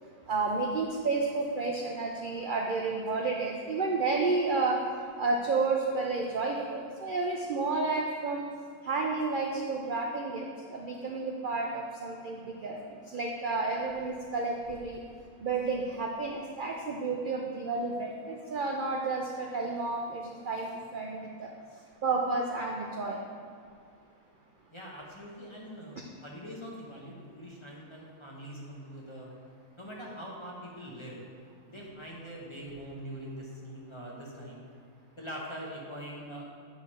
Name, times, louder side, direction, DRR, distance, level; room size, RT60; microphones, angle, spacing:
voice 1, 0.3-4.8 5.2-8.4 8.8-10.4 10.7-12.8 13.1-15.0 15.4-21.5 22.0-23.2, right 3 dB, 70° right, 0 dB, 0.4 m, -31 dB
voice 2, 24.7-29.3 29.8-31.2 31.7-34.6 35.2-36.4, equal, 25° left, -4 dB, 0.8 m, -43 dB
9.0 x 3.4 x 5.5 m, 2.2 s
omnidirectional pair, 1.6 m